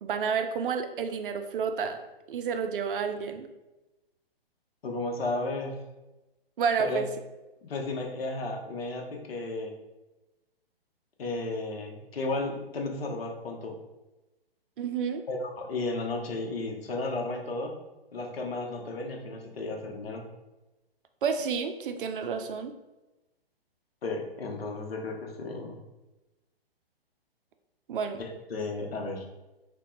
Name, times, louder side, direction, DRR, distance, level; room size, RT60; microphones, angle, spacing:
voice 1, 0.0-2.0 2.3-3.5 6.6-7.1 14.8-15.2 21.2-22.7 27.9-28.2, right 6 dB, 60° right, 7 dB, 0.5 m, -30 dB
voice 2, 4.8-5.7 6.8-7.0 7.6-9.7 11.2-13.7 15.3-17.7 18.1-20.3 24.0-25.8 28.2-29.2, left 2 dB, 75° left, 1 dB, 0.8 m, -34 dB
2.8 x 2.2 x 3.7 m, 1.0 s
hypercardioid pair, 130°, 30 cm